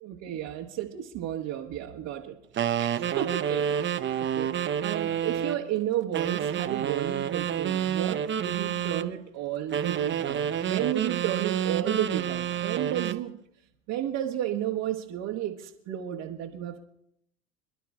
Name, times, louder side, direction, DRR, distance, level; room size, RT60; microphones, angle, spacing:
voice 1, 0.0-4.5 4.8-13.3 13.9-16.8, right 11 dB, 50° right, -1 dB, 1.5 m, -32 dB
sound 1, 2.6-5.6 6.1-9.1 9.7-13.2, right 9 dB, 30° right, 0.9 m, -29 dB
28.0 x 11.5 x 2.4 m, 0.74 s
hypercardioid pair, 80°, 40 cm